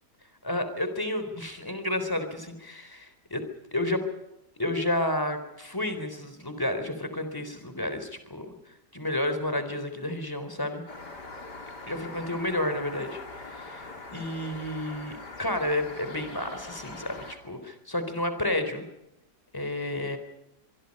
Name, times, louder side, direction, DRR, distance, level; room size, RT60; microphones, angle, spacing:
voice 1, 0.4-3.4 3.7-4.1 4.6-10.8 11.9-18.9 19.5-20.2, left 1 dB, 10° left, 8 dB, 3.8 m, -31 dB
sound 1, 10.9-17.3, left 3 dB, 85° left, 4.2 m, -42 dB
25.0 x 23.0 x 5.4 m, 0.87 s
omnidirectional pair, 1.7 m